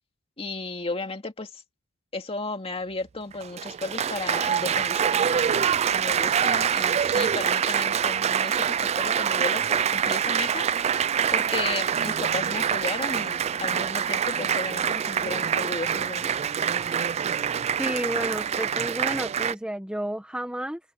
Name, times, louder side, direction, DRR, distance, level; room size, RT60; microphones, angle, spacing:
voice 1, 0.4-1.6 2.1-11.0 11.3-16.4, left 3 dB, 25° left, 2.2 m, -34 dB
Applause, 3.3-19.5, right 8 dB, 30° right, 0.3 m, -25 dB
voice 2, 17.8-20.8, right 1 dB, 5° right, 1.1 m, -31 dB
open air
head